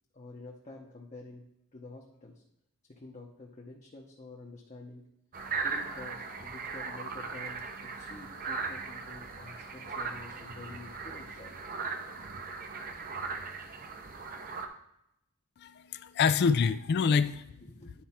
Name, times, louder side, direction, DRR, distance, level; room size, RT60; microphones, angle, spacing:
voice 1, 0.1-2.4 2.9-5.1 5.6-11.6 17.6-17.9, left 2 dB, 30° left, 0.8 m, -48 dB
sound 1, 5.3-14.7, right 4 dB, 40° right, 0.7 m, -38 dB
voice 2, 15.6-17.6, left 5 dB, 50° left, 0.3 m, -26 dB
10.0 x 4.5 x 4.3 m
head